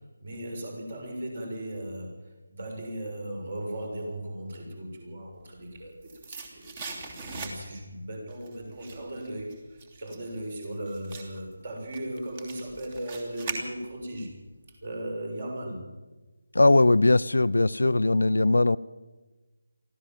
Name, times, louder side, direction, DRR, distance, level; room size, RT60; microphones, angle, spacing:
voice 1, 0.2-2.1 2.5-14.3 14.8-15.8, right 1 dB, 40° right, 2 dB, 6.7 m, -37 dB
sound 1, 5.5-7.9 8.3-14.2 14.5-14.6, right 3 dB, 25° right, 2.9 m, -41 dB
voice 2, 16.5-18.8, left 2 dB, 65° left, 16 dB, 0.6 m, -20 dB
23.5 x 15.0 x 7.6 m, 1.2 s
figure-of-eight pair, 155°, 0 cm